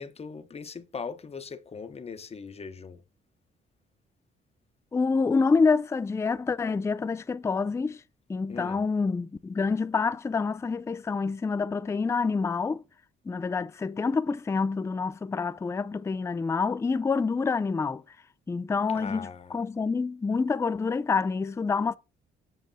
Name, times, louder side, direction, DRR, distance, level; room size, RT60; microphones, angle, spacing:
voice 1, 0.0-3.0 8.5-8.8 18.9-19.6, left 5 dB, 30° left, 0.9 m, -40 dB
voice 2, 4.9-8.0 8.3-12.8 13.3-18.0 18.5-22.0, left 4 dB, 15° left, 0.3 m, -27 dB
7.4 x 6.2 x 2.7 m
cardioid pair, 90°, 20 cm